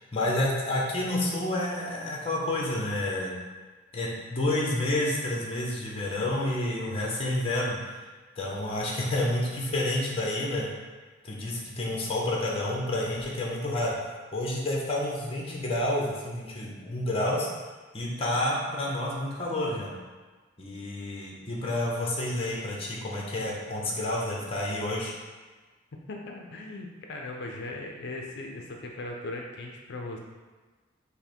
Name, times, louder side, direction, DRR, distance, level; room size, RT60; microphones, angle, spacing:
voice 1, 0.1-3.3 3.9-7.8 8.4-10.7 11.2-13.9 14.3-17.5 17.9-19.9 20.6-25.1, left 1 dB, 30° left, -3 dB, 0.8 m, -29 dB
voice 2, 26.1-30.2, left 2 dB, 55° left, 1 dB, 0.5 m, -38 dB
5.6 x 2.1 x 4.4 m, 1.3 s
head